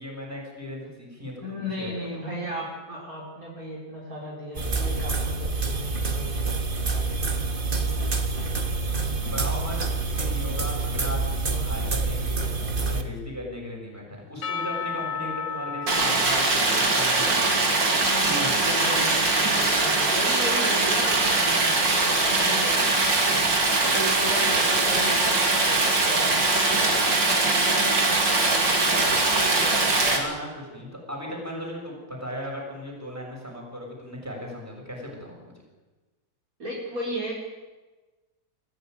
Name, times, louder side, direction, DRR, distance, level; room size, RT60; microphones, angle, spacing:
voice 1, 0.0-2.2 9.2-9.8 10.0-17.7 18.3-18.6 30.1-35.5, equal, 5° right, -1 dB, 7.1 m, -37 dB
voice 2, 1.4-6.6 18.0-23.0 23.9-30.3 36.6-37.4, equal, 45° right, -4 dB, 5.0 m, -35 dB
sound 1, 4.5-13.0, right 3 dB, 30° right, 1.7 m, -27 dB
Percussion / Church bell, 14.4-18.8, left 6 dB, 70° left, 2.6 m, -35 dB
Stream, 15.9-30.2, right 3 dB, 75° right, 3.7 m, -22 dB
24.0 x 15.0 x 9.6 m, 1.2 s
omnidirectional pair, 2.0 m